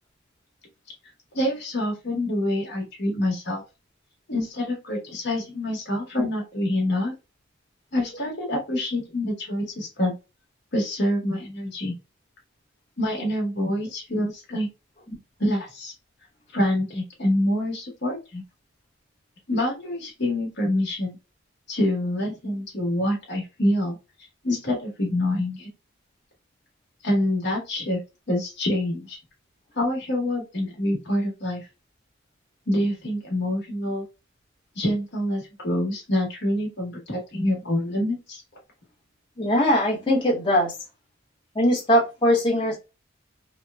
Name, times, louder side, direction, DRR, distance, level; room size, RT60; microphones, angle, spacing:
voice 1, 1.3-3.6 4.3-7.1 7.9-10.1 10.7-11.9 13.0-14.7 15.4-15.9 16.5-18.4 19.5-21.2 21.7-24.0 24.4-25.7 27.0-28.0 28.3-29.2 29.7-31.6 32.7-34.0 34.7-38.4, left 1 dB, 55° left, -1 dB, 1.1 m, -26 dB
voice 2, 39.4-40.7 41.5-42.8, equal, 25° left, -5 dB, 0.9 m, -21 dB
2.9 x 2.1 x 2.2 m, 0.27 s
head